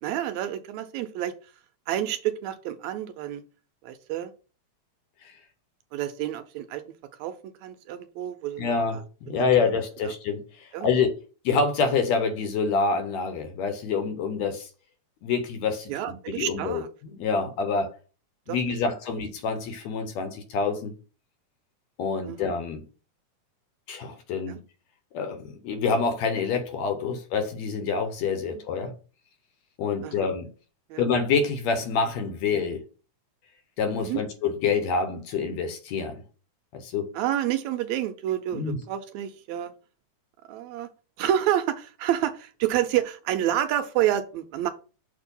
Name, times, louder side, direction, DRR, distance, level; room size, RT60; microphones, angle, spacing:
voice 1, 0.0-1.3 1.9-3.4 3.8-4.3 5.9-6.8 7.2-7.3 7.6-9.0 9.3-9.8 10.0-10.1 10.7-10.9 15.9-16.9 18.5-18.6 22.2-22.5 24.5-24.6 27.1-27.2 30.0-30.3 30.9-31.1 34.0-34.2 37.1-39.7 40.5-40.9 41.2-44.7, right 11 dB, 80° right, 1.8 m, -29 dB
voice 2, 8.6-10.4 10.8-11.1 11.5-14.7 15.2-17.9 18.5-20.9 22.0-22.8 23.9-24.6 25.1-28.9 29.8-30.5 31.0-32.8 33.8-36.2 36.7-37.1 38.5-38.8, left 5 dB, 70° left, 2.0 m, -27 dB
6.5 x 2.8 x 5.3 m
omnidirectional pair, 3.4 m